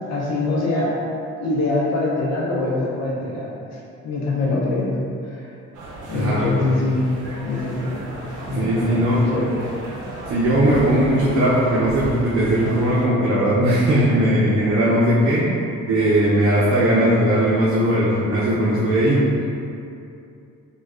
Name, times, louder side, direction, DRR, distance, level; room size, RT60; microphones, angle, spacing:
voice 1, 0.1-1.0 1.4-3.5 4.0-5.0 5.2-5.5 6.1-7.1 7.5-8.0 8.4-9.6, left 2 dB, 60° left, -4 dB, 0.6 m, -23 dB
sound 1, 5.7-13.1, right 2 dB, 80° right, 0.6 m, -35 dB
voice 2, 6.1-6.7 8.5-9.2 9.9-15.4 15.9-19.2, right 1 dB, 50° right, -7 dB, 0.6 m, -19 dB
3.0 x 2.3 x 3.6 m, 2.6 s
cardioid pair, 90°, 30 cm